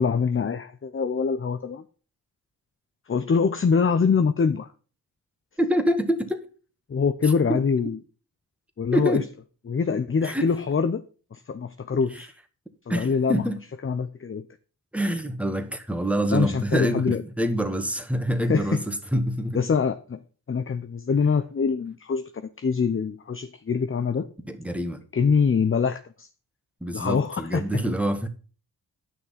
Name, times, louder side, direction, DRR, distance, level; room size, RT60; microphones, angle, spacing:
voice 1, 0.0-1.8 3.1-4.7 6.9-8.0 8.8-9.2 9.7-11.0 11.3-12.3 12.9-13.4 13.8-14.4 16.3-17.2 18.5-18.8 19.5-20.2 20.5-22.2 22.6-24.3 25.1-26.3 26.9-27.6, left 5 dB, 30° left, 0.7 m, -24 dB
voice 2, 5.6-6.4 7.2-7.6 8.9-9.2 10.2-10.5 12.1-12.2 12.9-13.6 14.9-19.6 24.5-25.0 26.8-28.3, right 1 dB, 5° right, 1.7 m, -26 dB
9.7 x 6.2 x 5.8 m
cardioid pair, 65°, 39 cm